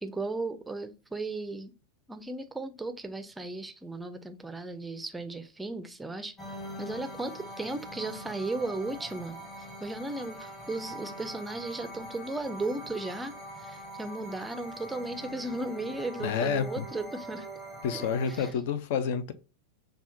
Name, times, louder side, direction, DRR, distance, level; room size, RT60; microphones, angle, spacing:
voice 1, 0.0-1.7 2.1-6.4 6.8-9.4 9.8-17.5 17.9-18.5, right 2 dB, 10° right, 0.5 m, -36 dB
sound 1, 6.4-18.5, right 1 dB, 15° left, 1.0 m, -43 dB
voice 2, 16.2-16.9 17.8-19.3, left 7 dB, 50° left, 0.5 m, -29 dB
5.5 x 2.4 x 2.6 m
figure-of-eight pair, 90°, 0 cm